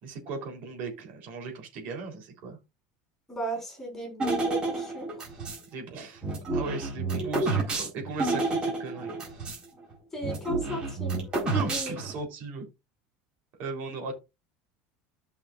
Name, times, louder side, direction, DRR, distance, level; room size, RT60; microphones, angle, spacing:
voice 1, 0.0-2.6 5.7-6.2 6.5-9.3 11.5-12.6 13.6-14.1, right 3 dB, 45° right, 3.6 m, -37 dB
voice 2, 3.3-5.1 7.2-7.5 10.1-11.3 11.6-12.0, right 1 dB, 10° left, 4.6 m, -35 dB
sound 1, 4.2-5.6 6.2-9.6 9.9-10.0 10.2-12.2, right 3 dB, 20° right, 4.3 m, -30 dB
14.0 x 5.9 x 2.5 m
cardioid pair, 170°, 4 cm